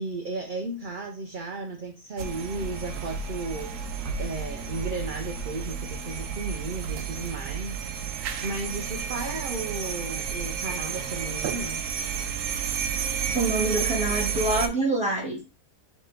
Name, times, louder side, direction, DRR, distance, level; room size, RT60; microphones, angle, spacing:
voice 1, 0.0-11.8 13.8-13.9, right 3 dB, 50° right, 3 dB, 0.6 m, -35 dB
sound 1, 2.2-14.7, right 7 dB, 70° right, 1.0 m, -31 dB
voice 2, 13.3-15.4, right 2 dB, 5° right, -1 dB, 1.5 m, -26 dB
4.3 x 3.2 x 3.2 m, 0.29 s
omnidirectional pair, 1.5 m